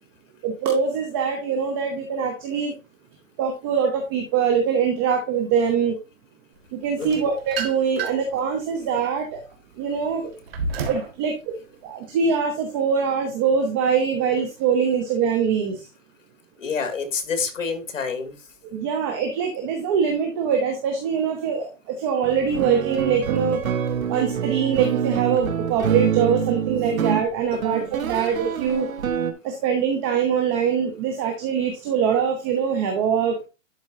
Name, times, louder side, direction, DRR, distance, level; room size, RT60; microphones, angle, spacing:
voice 1, 0.4-2.8 3.4-6.0 6.7-9.4 9.8-10.3 10.8-11.5 11.8-15.8 18.7-23.6 24.1-28.9 29.4-33.5, right 6 dB, 20° right, 3 dB, 0.7 m, -23 dB
sound 1, 7.0-8.4 8.9-11.2, right 4 dB, 45° right, 1.8 m, -31 dB
voice 2, 16.6-18.4 27.5-27.8, left 5 dB, 70° left, 7 dB, 2.3 m, -28 dB
sound 2, 22.2-29.3, right 7 dB, 85° right, 1.3 m, -26 dB
11.5 x 4.4 x 2.7 m, 0.29 s
hypercardioid pair, 160°, 40 cm